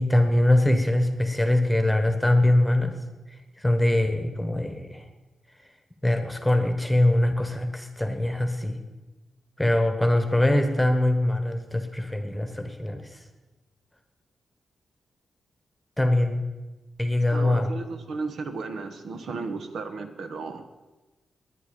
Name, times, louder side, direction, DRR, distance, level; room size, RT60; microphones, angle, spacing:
voice 1, 0.0-2.9 3.6-5.0 6.0-8.8 9.6-13.1 16.0-16.4 17.0-17.7, left 1 dB, 5° left, 7 dB, 1.4 m, -23 dB
voice 2, 17.3-20.6, right 4 dB, 70° right, 8 dB, 1.3 m, -34 dB
20.5 x 9.7 x 5.3 m, 1.1 s
wide cardioid pair, 165°, 0 cm